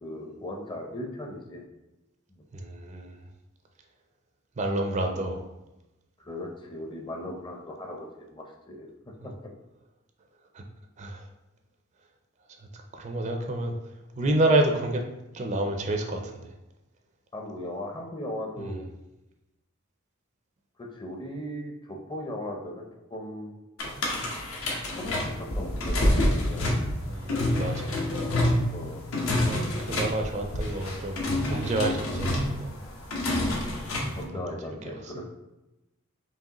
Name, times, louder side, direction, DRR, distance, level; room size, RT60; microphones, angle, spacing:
voice 1, 0.0-1.7 2.3-2.4 6.2-8.9 17.3-18.9 20.8-23.5 25.0-26.8 28.7-29.0 34.1-35.3, left 1 dB, 25° left, 1 dB, 0.6 m, -38 dB
voice 2, 2.5-3.1 4.6-5.5 9.2-9.3 10.5-10.6 11.0-11.2 12.9-13.7 14.2-15.0 15.3-16.5 18.6-18.8 27.0-28.0 29.3-32.7 34.3-34.9, right 2 dB, 35° right, 4 dB, 0.4 m, -29 dB
sound 1, 23.8-34.2, left 1 dB, 80° left, 0.9 m, -27 dB
4.7 x 3.0 x 2.9 m, 0.96 s
head